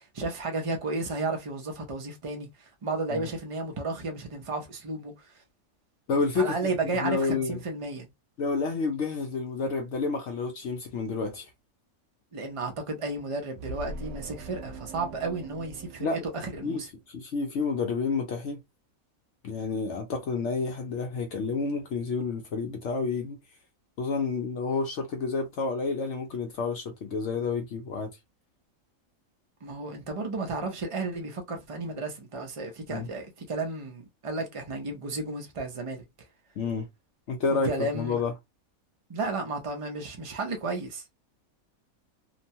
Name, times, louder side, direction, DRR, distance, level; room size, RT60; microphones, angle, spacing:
voice 1, 0.0-5.3 6.3-8.1 12.3-16.1 16.6-16.9 29.6-36.0 37.5-38.2 39.1-41.0, right 3 dB, 35° right, 0.5 m, -33 dB
voice 2, 6.1-6.6 7.0-7.6 8.4-11.5 16.0-16.2 16.6-16.8 17.1-18.6 19.4-23.4 24.0-28.1 32.9-33.1 36.6-36.9 37.3-38.3, left 4 dB, 65° left, 0.8 m, -29 dB
sound 1, 13.6-17.0, right 2 dB, 75° right, 1.0 m, -42 dB
2.9 x 2.2 x 2.7 m
omnidirectional pair, 1.5 m